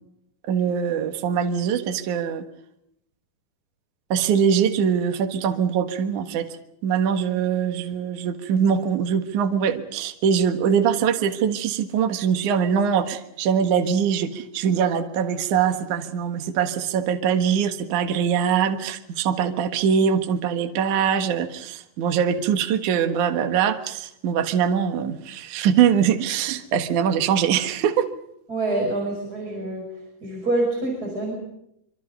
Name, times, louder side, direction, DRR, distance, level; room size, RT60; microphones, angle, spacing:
voice 1, 0.5-2.4 4.1-6.5 6.8-28.1, right 7 dB, 60° right, 6 dB, 2.7 m, -22 dB
voice 2, 28.5-29.9 30.2-31.4, right 2 dB, 25° right, 0 dB, 5.9 m, -26 dB
26.0 x 25.0 x 5.6 m, 0.78 s
omnidirectional pair, 4.3 m